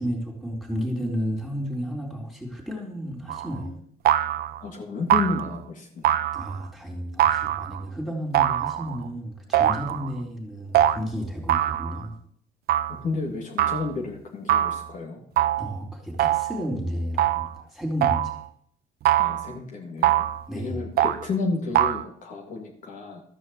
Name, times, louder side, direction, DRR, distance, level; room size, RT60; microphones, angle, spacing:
voice 1, 0.0-3.8 6.3-12.1 15.6-18.4 20.5-20.8, equal, ahead, 0 dB, 4.1 m, -32 dB
sound 1, 3.3-3.6 4.1-4.6 5.1-5.6 6.0-6.6 7.2-7.8 8.3-9.1 9.5-10.1 10.7-11.0 11.5-12.0 12.7-13.0 13.6-13.9 14.5-14.9 15.4-15.7 16.2-16.6 17.2-17.6 18.0-18.4 19.1-19.5 20.0-20.4 21.0-21.3 21.7-22.0, right 12 dB, 65° right, 0.7 m, -23 dB
voice 2, 4.6-6.1 13.0-15.2 19.2-20.3 20.5-23.2, left 3 dB, 50° left, 0 dB, 2.7 m, -31 dB
13.0 x 6.4 x 8.0 m, 0.65 s
cardioid pair, 110°, 17 cm